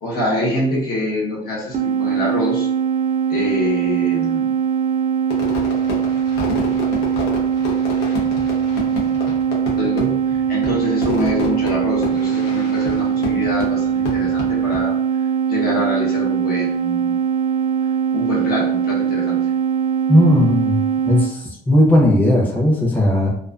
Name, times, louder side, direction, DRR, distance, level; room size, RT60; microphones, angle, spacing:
voice 1, 0.0-2.7 3.3-4.4 9.8-17.1 18.1-19.4, left 1 dB, 65° left, -4 dB, 1.0 m, -25 dB
sound 1, 1.7-21.3, right 7 dB, 50° right, 0.4 m, -21 dB
Fireworks, 5.3-14.8, left 2 dB, 85° left, 0.7 m, -29 dB
voice 2, 20.1-20.8 21.1-23.3, left 1 dB, 10° left, -4 dB, 0.6 m, -16 dB
2.3 x 2.3 x 2.3 m, 0.69 s
cardioid pair, 110°, 17 cm